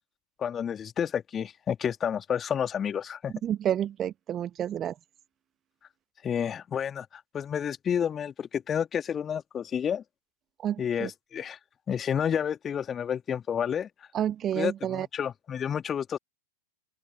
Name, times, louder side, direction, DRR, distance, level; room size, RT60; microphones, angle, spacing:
voice 1, 0.4-3.3 6.2-10.0 10.8-11.6 11.9-13.9 14.5-16.2, left 8 dB, 25° left, 3.1 m, -30 dB
voice 2, 3.4-4.9 10.6-11.1 14.1-15.1, right 10 dB, 30° right, 1.1 m, -29 dB
open air
figure-of-eight pair, 90°, 0 cm